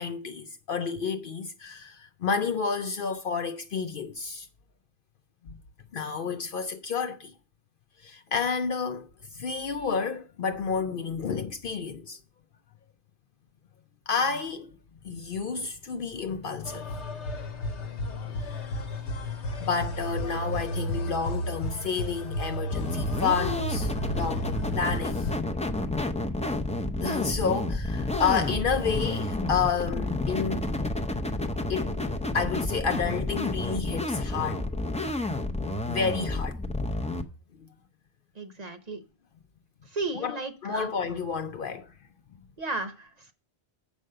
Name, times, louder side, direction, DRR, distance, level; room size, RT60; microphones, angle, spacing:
voice 1, 0.0-4.5 5.4-5.5 5.9-7.3 8.0-12.2 14.1-14.7 15.0-17.2 18.5-18.6 19.5-25.3 27.0-30.6 31.7-31.9 32.3-34.6 35.6-36.6 40.1-41.9, left 5 dB, 60° left, 0.7 m, -30 dB
sound 1, 16.7-25.4, equal, 75° left, 1.2 m, -33 dB
sound 2, 22.7-37.2, left 2 dB, 10° left, 0.4 m, -30 dB
voice 2, 38.4-39.0 39.9-40.9 42.6-43.3, right 3 dB, 40° right, 0.9 m, -34 dB
7.6 x 5.3 x 6.5 m
omnidirectional pair, 1.2 m